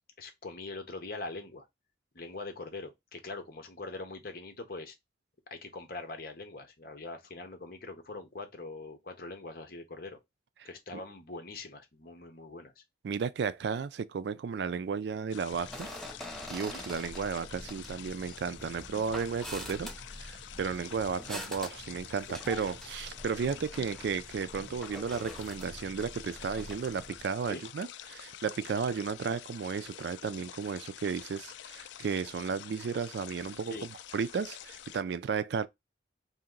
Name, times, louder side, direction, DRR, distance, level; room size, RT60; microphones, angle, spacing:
voice 1, 0.2-1.7 2.1-4.9 5.5-10.2 10.6-12.8 16.7-16.8 22.3-22.4 23.4-23.5 27.5-27.6 33.7-33.9, left 3 dB, 50° left, 0.9 m, -43 dB
voice 2, 13.0-15.9 16.5-19.9 20.2-33.8 34.1-35.7, right 6 dB, 65° right, 0.3 m, -34 dB
sound 1, 15.3-35.0, left 11 dB, 75° left, 0.3 m, -48 dB
sound 2, 15.5-27.2, equal, ahead, 0.4 m, -45 dB
2.9 x 2.8 x 3.6 m
head